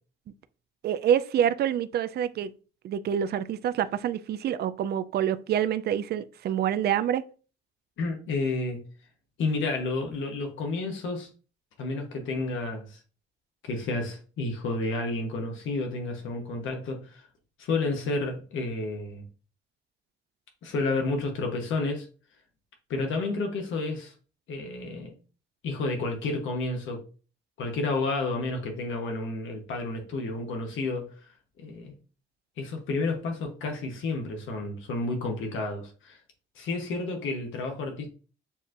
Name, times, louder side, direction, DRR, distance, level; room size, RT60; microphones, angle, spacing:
voice 1, 0.8-2.5 2.8-7.2, right 9 dB, 55° right, 0.4 m, -27 dB
voice 2, 8.0-8.9 9.4-11.3 11.8-13.0 13.6-17.3 17.6-19.2 20.6-22.1 22.9-24.1 24.5-25.1 25.6-27.0 27.6-31.3 31.6-31.9 32.6-36.2 36.6-38.1, left 3 dB, 80° left, 1.0 m, -31 dB
6.9 x 2.5 x 2.5 m
cardioid pair, 90°, 20 cm